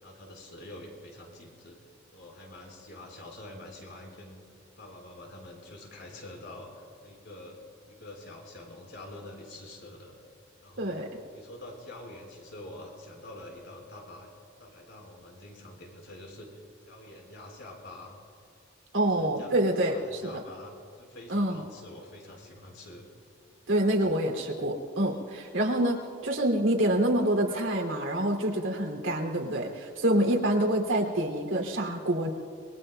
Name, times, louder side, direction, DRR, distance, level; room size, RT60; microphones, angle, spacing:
voice 1, 0.0-1.8 2.1-4.4 4.8-10.1 10.6-11.0 11.3-14.3 14.6-18.2 19.1-19.5 19.8-23.1, left 1 dB, 60° left, -1 dB, 4.4 m, -46 dB
voice 2, 10.8-11.1 18.9-20.4 21.3-21.6 23.7-32.3, right 1 dB, 80° right, 1 dB, 2.6 m, -27 dB
27.0 x 23.0 x 2.2 m, 2.2 s
head